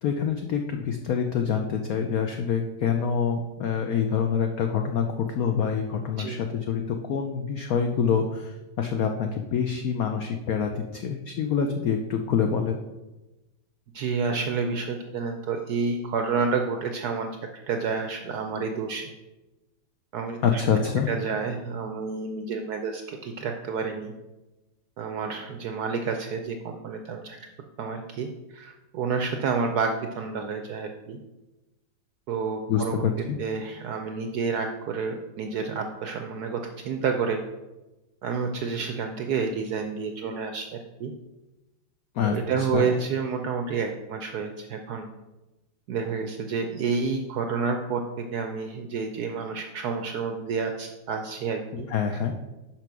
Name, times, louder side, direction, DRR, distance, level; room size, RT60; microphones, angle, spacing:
voice 1, 0.0-12.8 20.4-21.1 32.7-33.4 42.1-43.0 51.7-52.3, left 7 dB, 80° left, 5 dB, 0.8 m, -26 dB
voice 2, 13.9-17.3 17.7-19.1 20.1-20.6 21.1-24.1 25.0-27.4 27.8-31.2 32.3-33.0 33.4-37.4 38.2-40.7 41.0-41.1 42.2-45.1 45.9-51.9, right 5 dB, 75° right, 5 dB, 0.9 m, -29 dB
5.9 x 5.3 x 5.9 m, 1.1 s
omnidirectional pair, 2.2 m